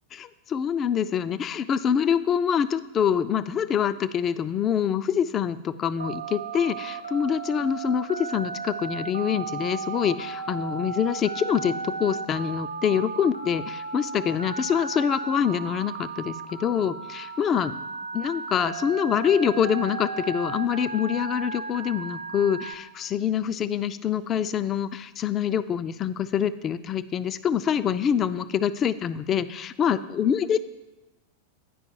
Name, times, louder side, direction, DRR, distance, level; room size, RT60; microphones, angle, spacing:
voice 1, 0.1-17.7 18.1-30.6, left 8 dB, 30° left, 14 dB, 0.3 m, -25 dB
Telephone, 6.0-22.7, right 4 dB, 80° right, 0.8 m, -35 dB
9.2 x 5.2 x 4.6 m, 1.0 s
figure-of-eight pair, 90°, 0 cm